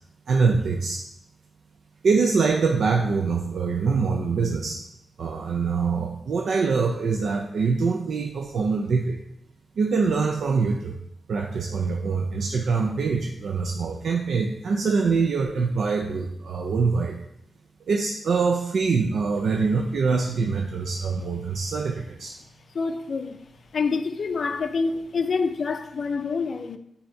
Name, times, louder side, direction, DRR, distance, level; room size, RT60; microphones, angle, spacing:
voice 1, 0.3-1.0 2.0-4.8 5.2-9.2 9.8-11.0 11.3-17.2 17.9-22.3, right 4 dB, 75° right, 0.4 m, -24 dB
voice 2, 22.7-23.4 23.7-26.8, left 4 dB, 55° left, 0.4 m, -27 dB
7.8 x 2.8 x 4.4 m
wide cardioid pair, 150°, 0 cm